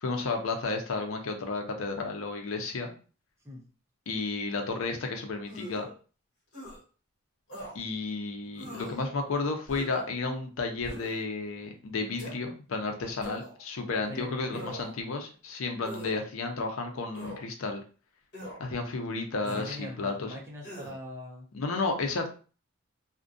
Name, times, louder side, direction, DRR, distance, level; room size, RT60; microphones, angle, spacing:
voice 1, 0.0-2.9 4.1-5.9 7.7-17.8 18.6-20.3 21.5-22.3, left 3 dB, 80° left, 4 dB, 0.5 m, -32 dB
sound 1, 5.5-5.9 6.5-6.8 7.5-7.8 8.6-9.0 9.7-10.1 10.8-11.2 12.2-12.4 13.2-13.6 14.5-15.0 15.8-16.2 17.1-17.4 18.3-18.6 19.4-19.8 20.6-21.0, equal, 55° left, 1.3 m, -42 dB
voice 2, 14.1-14.9 19.4-21.5, left 1 dB, 15° right, -1 dB, 0.6 m, -42 dB
2.4 x 2.1 x 2.5 m, 0.38 s
head